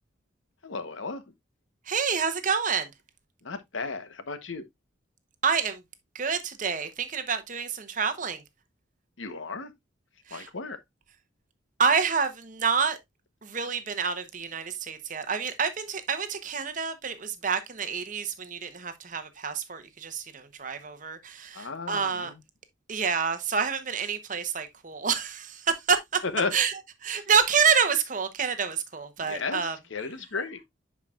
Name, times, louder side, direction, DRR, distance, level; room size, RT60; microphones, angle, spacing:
voice 1, 0.6-1.2 3.4-4.7 9.2-9.7 10.3-10.8 21.5-22.4 26.2-26.5 27.2-27.3 29.2-30.6, left 4 dB, 80° left, 1.0 m, -34 dB
voice 2, 1.9-2.9 5.4-5.8 6.1-8.4 10.3-10.5 11.8-13.0 13.4-22.3 22.9-26.2 26.5-26.7 27.0-29.8, right 6 dB, 40° right, 0.9 m, -28 dB
10.5 x 4.8 x 2.4 m
head